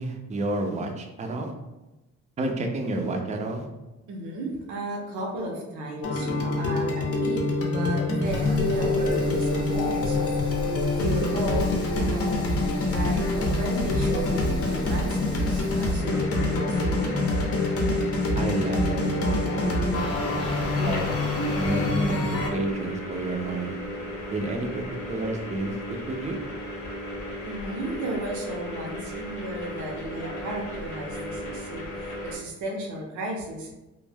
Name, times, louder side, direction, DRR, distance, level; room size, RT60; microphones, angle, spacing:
voice 1, 0.0-1.5 2.4-3.7 18.4-20.4 20.8-21.0 21.6-23.8 24.3-25.7 26.1-26.4, right 2 dB, 25° right, 3 dB, 0.4 m, -30 dB
voice 2, 4.1-10.4 10.9-17.4 27.4-33.7, right 1 dB, 75° right, 0 dB, 0.7 m, -34 dB
sound 1, 6.0-22.5, left 2 dB, 50° left, 0.6 m, -26 dB
Rain, 8.2-15.9, equal, 15° left, 0.7 m, -36 dB
sound 2, 16.0-32.4, left 1 dB, 80° left, 0.7 m, -36 dB
2.2 x 2.0 x 3.3 m, 1.0 s
cardioid pair, 90°, 30 cm